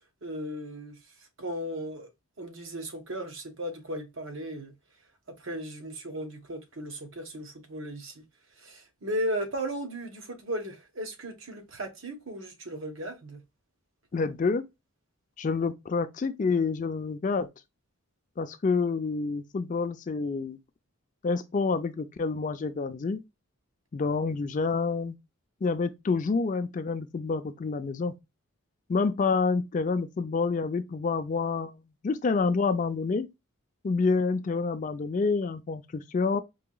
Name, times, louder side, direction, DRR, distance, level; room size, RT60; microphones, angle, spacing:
voice 1, 0.2-1.0 1.4-2.1 2.4-4.7 5.3-8.2 8.6-13.4, equal, 60° right, 1.1 m, -36 dB
voice 2, 14.1-14.7 15.4-17.5 18.4-20.6 21.2-23.2 23.9-25.2 25.6-28.1 28.9-31.7 32.0-33.3 33.8-36.4, left 4 dB, 35° left, 0.3 m, -28 dB
4.7 x 2.8 x 2.2 m
head